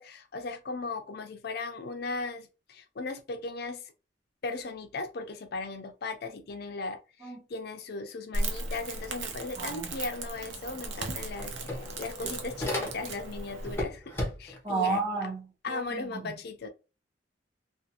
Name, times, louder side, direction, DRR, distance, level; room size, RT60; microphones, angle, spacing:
voice 1, 0.0-3.8 4.4-14.1 14.4-15.0 15.6-16.7, left 3 dB, 55° left, 0.5 m, -37 dB
Crackle, 8.3-13.8, right 2 dB, 90° right, 0.6 m, -36 dB
voice 2, 9.6-9.9 14.6-16.3, right 4 dB, 25° right, 1.0 m, -32 dB
sound 1, 10.7-10.8 11.0-13.3 13.6-14.7, left 1 dB, 15° left, 0.8 m, -35 dB
2.4 x 2.4 x 2.8 m
head